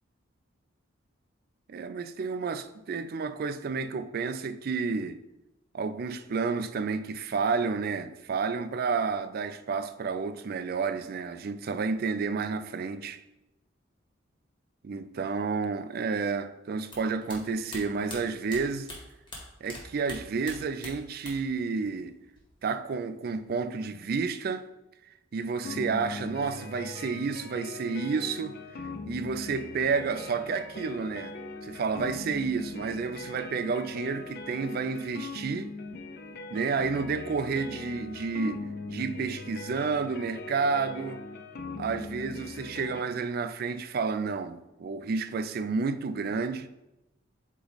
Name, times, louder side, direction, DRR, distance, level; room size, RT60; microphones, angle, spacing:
voice 1, 1.7-5.2 5.7-13.2 14.8-18.9 19.6-22.2 22.6-24.7 25.3-28.6 29.1-31.3 31.6-35.7 36.5-41.2 41.8-46.7, right 5 dB, 50° right, 0.4 m, -30 dB
sound 1, 16.8-19.8 20.0-21.6 21.8-22.6, left 1 dB, 25° left, 1.7 m, -43 dB
sound 2, 25.6-43.0, left 3 dB, 55° left, 0.6 m, -40 dB
8.2 x 3.0 x 4.0 m
head